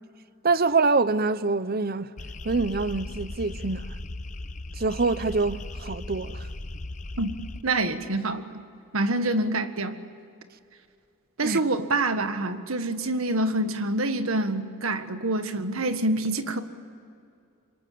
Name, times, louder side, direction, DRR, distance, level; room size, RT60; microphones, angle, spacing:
voice 1, 0.4-2.1 2.4-3.8 4.8-6.4 11.4-11.6, right 3 dB, 45° right, 0.7 m, -25 dB
sound 1, 2.2-7.6, left 2 dB, 35° left, 1.0 m, -37 dB
voice 2, 7.6-8.6 8.9-10.0 11.4-16.6, right 2 dB, 80° right, 1.7 m, -26 dB
27.5 x 24.5 x 8.6 m
head